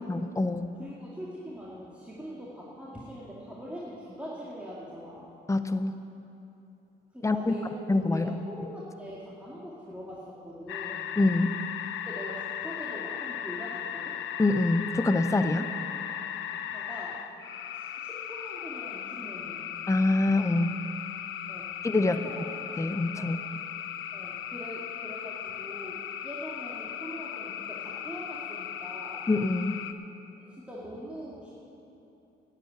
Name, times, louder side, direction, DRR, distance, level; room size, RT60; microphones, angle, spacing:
voice 1, 0.1-0.7 5.5-6.0 7.2-7.4 7.9-8.3 11.2-11.5 14.4-15.7 19.9-20.8 21.8-22.2 22.8-23.4 29.3-29.8, left 2 dB, 15° left, 9 dB, 0.7 m, -25 dB
voice 2, 0.8-5.3 7.1-7.7 8.1-11.1 12.0-14.2 16.5-17.2 17.7-19.8 21.5-21.7 22.0-22.4 23.2-23.4 24.1-29.3 30.6-31.5, equal, 5° right, -7 dB, 2.2 m, -42 dB
sound 1, 10.7-29.9, left 9 dB, 80° left, 0.7 m, -37 dB
11.0 x 8.5 x 9.2 m, 2.9 s
cardioid pair, 90°, 20 cm